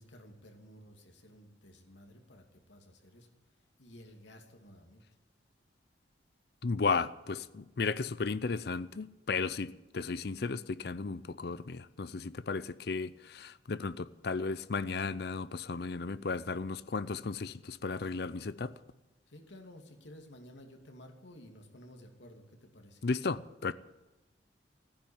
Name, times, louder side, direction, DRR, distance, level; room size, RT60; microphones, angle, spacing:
voice 1, 0.0-3.3 3.8-5.0 19.3-23.1, left 1 dB, 75° left, 2.6 m, -54 dB
voice 2, 6.6-18.7 23.0-23.7, left 4 dB, 55° left, 0.5 m, -34 dB
15.5 x 10.5 x 8.8 m
head